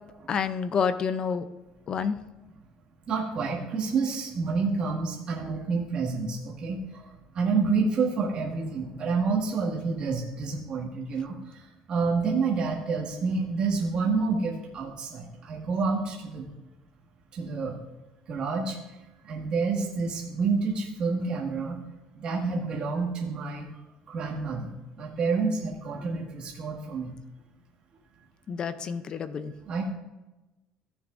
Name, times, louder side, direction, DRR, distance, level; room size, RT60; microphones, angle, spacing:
voice 1, 0.3-1.4 1.9-2.2 28.5-29.5, left 6 dB, 35° left, 12 dB, 0.5 m, -28 dB
voice 2, 3.1-7.1 7.3-16.5 17.3-17.8 18.3-19.0 19.2-21.8 22.1-23.7 24.1-27.1 29.7-29.9, right 4 dB, 40° right, -3 dB, 1.8 m, -28 dB
15.0 x 7.1 x 2.6 m, 1.0 s
cardioid pair, 145°, 2 cm